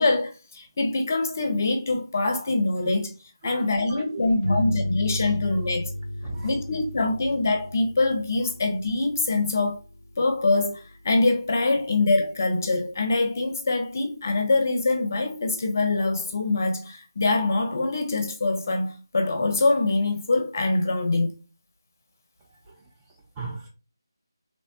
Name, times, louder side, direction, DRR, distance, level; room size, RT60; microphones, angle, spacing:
voice 1, 0.0-3.1 3.4-5.9 6.4-9.8 10.2-21.3, left 2 dB, 40° left, 0.6 m, -24 dB
voice 2, 3.4-4.6 5.5-5.6 6.2-6.6 22.5-23.7, right 3 dB, 15° right, 0.3 m, -40 dB
sound 1, 4.4-13.7, equal, 75° right, 0.7 m, -35 dB
3.1 x 2.1 x 2.7 m
figure-of-eight pair, 160°, 2 cm